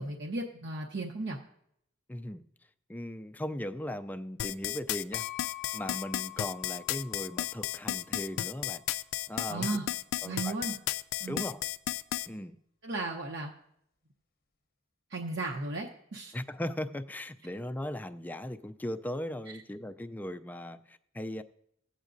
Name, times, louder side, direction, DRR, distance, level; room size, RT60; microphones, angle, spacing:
voice 1, 0.0-1.4 9.5-9.9 10.2-10.7 11.2-11.5 12.8-13.5 15.1-16.3 19.5-19.6, right 2 dB, 60° right, 0 dB, 0.8 m, -35 dB
voice 2, 2.1-2.4 2.9-5.3 5.7-8.8 9.3-9.8 10.2-10.5 11.3-11.7 12.3-12.6 16.3-21.4, left 1 dB, 10° left, 9 dB, 0.3 m, -38 dB
sound 1, 4.4-12.3, left 13 dB, 90° left, 0.3 m, -33 dB
sound 2, 5.1-8.9, left 15 dB, 50° left, 0.7 m, -47 dB
16.0 x 8.1 x 2.6 m, 0.74 s
head